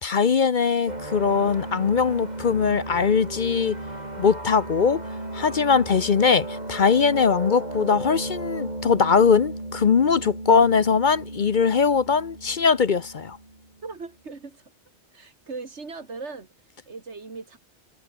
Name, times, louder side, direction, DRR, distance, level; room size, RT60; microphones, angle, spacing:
voice 1, 0.0-3.8 4.2-5.0 5.3-13.4, left 5 dB, 50° left, 0.9 m, -21 dB
sound 1, 0.9-13.9, right 1 dB, 40° right, 4.3 m, -35 dB
voice 2, 13.8-14.7 15.1-17.6, right 4 dB, 85° right, 2.7 m, -39 dB
omnidirectional pair, 1.1 m